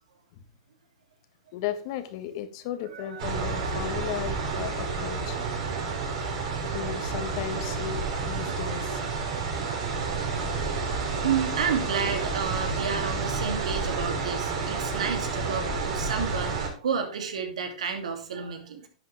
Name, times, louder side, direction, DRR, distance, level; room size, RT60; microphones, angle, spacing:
voice 1, 1.5-5.4 6.6-9.4 12.9-13.5 15.2-15.3, left 10 dB, 55° left, 9 dB, 1.6 m, -36 dB
voice 2, 2.9-3.8 5.0-5.2 6.3-6.4 9.2-9.4 9.8-10.4 10.7-18.9, right 6 dB, 85° right, 5 dB, 2.6 m, -32 dB
sound 1, 3.2-16.7, right 4 dB, 60° right, 5.2 m, -30 dB
11.0 x 8.1 x 3.3 m, 0.41 s
hypercardioid pair, 120°, 3 cm